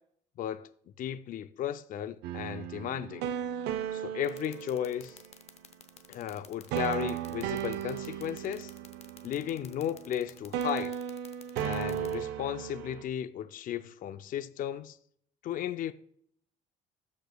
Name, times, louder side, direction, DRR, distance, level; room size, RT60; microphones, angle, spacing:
voice 1, 0.4-0.7 1.0-3.3 3.9-5.2 6.1-8.7 9.2-11.0 11.6-15.0 15.4-15.9, left 10 dB, 55° left, 0.4 m, -35 dB
sound 1, 2.2-5.4 6.7-10.2 10.5-13.0, right 9 dB, 90° right, 0.6 m, -36 dB
sound 2, 4.2-12.1, left 7 dB, 40° left, 0.8 m, -50 dB
13.5 x 5.0 x 2.3 m
cardioid pair, 110°, 17 cm